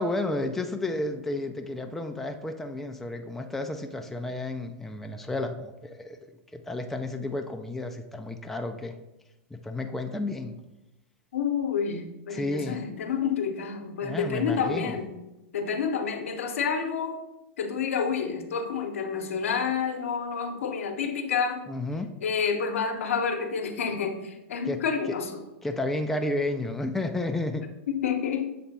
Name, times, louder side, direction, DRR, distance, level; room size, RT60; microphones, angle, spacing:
voice 1, 0.0-6.2 6.5-9.0 9.5-10.6 12.3-12.8 14.0-15.0 21.7-22.1 24.6-25.2 25.6-27.7, left 2 dB, 5° left, 4 dB, 0.4 m, -32 dB
voice 2, 11.3-15.2 15.5-17.2 17.6-21.6 22.2-25.4 27.9-28.5, left 6 dB, 85° left, 5 dB, 0.8 m, -29 dB
7.2 x 3.3 x 4.0 m, 0.95 s
hypercardioid pair, 130°, 7 cm